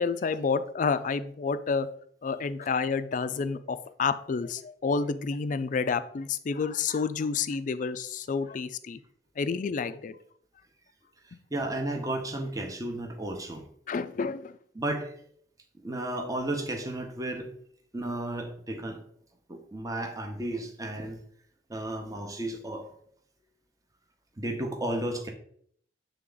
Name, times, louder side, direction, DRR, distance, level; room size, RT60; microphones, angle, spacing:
voice 1, 0.0-1.9 2.2-9.0 9.4-10.2 11.3-11.4 13.9-14.6, left 5 dB, 45° left, 13 dB, 0.4 m, -29 dB
voice 2, 11.2-13.7 14.7-15.1 15.8-17.5 17.9-19.0 19.5-21.2 21.7-22.9 24.4-25.3, right 1 dB, 20° right, 3 dB, 0.8 m, -33 dB
7.5 x 3.4 x 3.8 m, 0.63 s
head